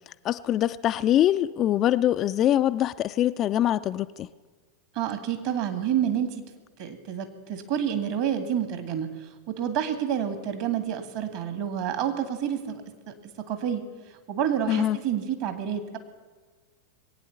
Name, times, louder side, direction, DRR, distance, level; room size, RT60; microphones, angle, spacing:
voice 1, 0.2-4.3 14.7-15.0, left 12 dB, 30° left, 0.4 m, -23 dB
voice 2, 5.0-6.4 6.8-13.1 13.5-13.8 14.3-16.0, right 9 dB, 45° right, 1.9 m, -29 dB
21.5 x 9.1 x 7.1 m
figure-of-eight pair, 90°, 0 cm